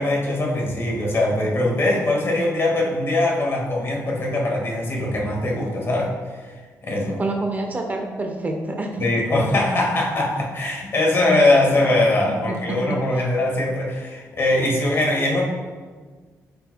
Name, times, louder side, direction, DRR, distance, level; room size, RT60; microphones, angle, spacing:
voice 1, 0.0-6.4 6.8-7.2 9.0-15.4, left 2 dB, 45° left, -1 dB, 1.7 m, -21 dB
voice 2, 7.0-9.1 11.8-11.9 12.5-12.8, right 2 dB, 30° right, 3 dB, 0.8 m, -27 dB
8.7 x 5.7 x 2.2 m, 1.5 s
cardioid pair, 80°, 6 cm